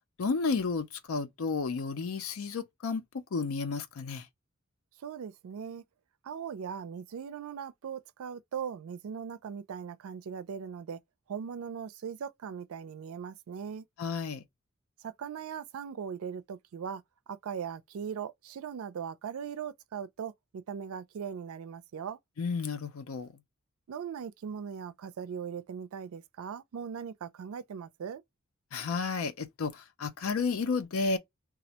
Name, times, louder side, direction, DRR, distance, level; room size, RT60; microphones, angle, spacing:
voice 1, 0.2-3.0 3.3-4.3 14.0-14.4 22.4-23.3 28.7-31.2, left 4 dB, 80° left, 0.5 m, -32 dB
voice 2, 5.0-5.8 6.2-11.0 11.3-13.9 15.0-17.0 17.3-22.2 23.9-28.2, right 7 dB, 85° right, 0.4 m, -39 dB
2.3 x 2.1 x 2.7 m
head